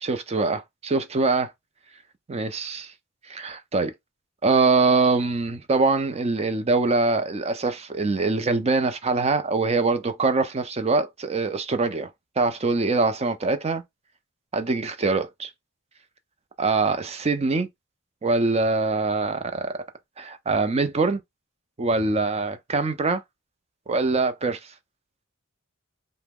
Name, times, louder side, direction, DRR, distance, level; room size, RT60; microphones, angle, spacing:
voice 1, 0.0-1.5 2.3-2.9 3.3-3.9 4.4-12.1 12.4-13.8 14.5-15.5 16.6-17.7 18.2-19.8 20.2-21.2 21.8-23.2 23.9-24.6, right 3 dB, 30° right, 0.5 m, -23 dB
2.9 x 2.1 x 3.5 m
head